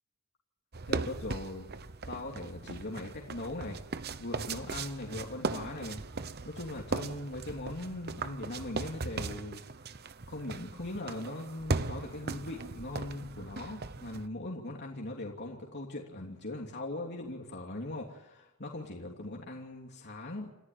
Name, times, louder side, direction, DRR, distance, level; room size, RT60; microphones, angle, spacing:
sound 1, 0.7-14.3, right 3 dB, 45° right, 1.0 m, -38 dB
voice 1, 0.9-1.7 2.1-6.0 6.4-9.9 10.3-20.5, left 2 dB, 50° left, 0 dB, 3.0 m, -40 dB
28.5 x 14.5 x 9.3 m, 0.97 s
head